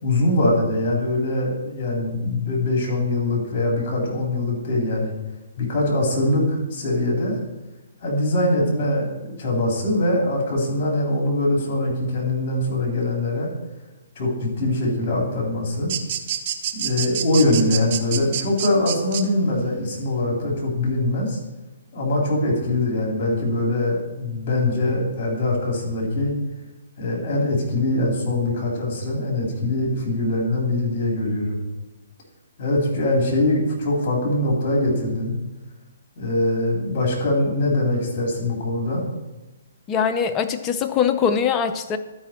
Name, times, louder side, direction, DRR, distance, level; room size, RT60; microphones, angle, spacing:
voice 1, 0.0-5.1 5.6-7.4 8.0-13.5 14.1-15.9 16.7-21.4 21.9-26.3 27.0-31.6 32.6-35.3 36.2-39.0, left 1 dB, 40° left, -1 dB, 3.3 m, -22 dB
sound 1, 15.9-19.2, right 9 dB, 45° right, 0.6 m, -27 dB
voice 2, 39.9-42.0, left 7 dB, 25° left, 8 dB, 0.6 m, -22 dB
12.0 x 5.0 x 4.3 m, 1.1 s
hypercardioid pair, 135°, 0 cm